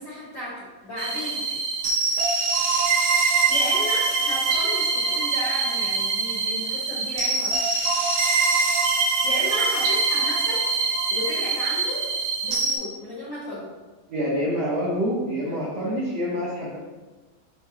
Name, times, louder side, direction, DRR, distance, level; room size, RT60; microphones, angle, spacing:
voice 1, 0.0-1.6 3.1-7.5 9.0-10.6 11.1-12.1 12.4-13.7, left 1 dB, 80° left, -7 dB, 1.0 m, -34 dB
sound 1, 1.0-12.8, right 4 dB, 70° right, 1.7 m, -23 dB
voice 2, 14.1-16.8, equal, 85° right, -4 dB, 1.4 m, -26 dB
6.6 x 5.6 x 2.8 m, 1.2 s
omnidirectional pair, 4.4 m